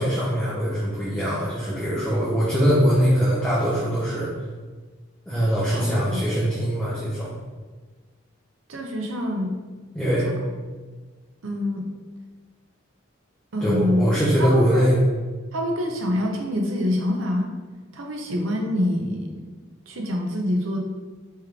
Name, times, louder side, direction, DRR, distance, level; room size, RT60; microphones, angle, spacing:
voice 1, 0.0-4.3 5.3-7.3 9.9-10.3 13.6-15.0, equal, 5° left, -9 dB, 0.6 m, -22 dB
voice 2, 5.7-6.2 8.7-9.6 11.4-11.9 13.5-14.0 14.4-14.9 15.5-17.5 17.9-19.5 19.9-20.8, left 1 dB, 75° right, 1 dB, 0.7 m, -25 dB
3.7 x 3.1 x 3.3 m, 1.3 s
head